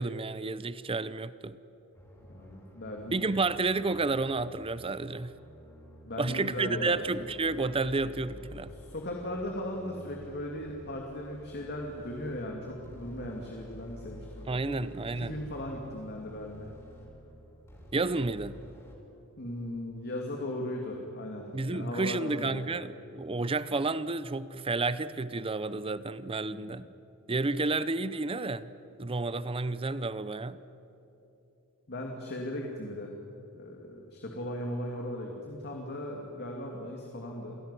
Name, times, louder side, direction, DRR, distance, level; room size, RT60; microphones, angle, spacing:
voice 1, 0.0-1.6 3.1-5.3 6.2-8.7 14.5-15.4 17.9-18.6 21.5-26.9 27.3-28.7 29.0-30.6, right 3 dB, 25° right, 15 dB, 0.6 m, -31 dB
sound 1, 1.9-19.0, equal, 15° left, 5.9 m, -50 dB
voice 2, 2.3-3.2 6.0-6.9 8.7-14.8 15.2-16.7 19.4-22.6 26.5-26.8 31.9-33.1 33.5-37.6, left 1 dB, 50° left, 1 dB, 2.7 m, -37 dB
28.5 x 17.0 x 10.0 m, 3.0 s
head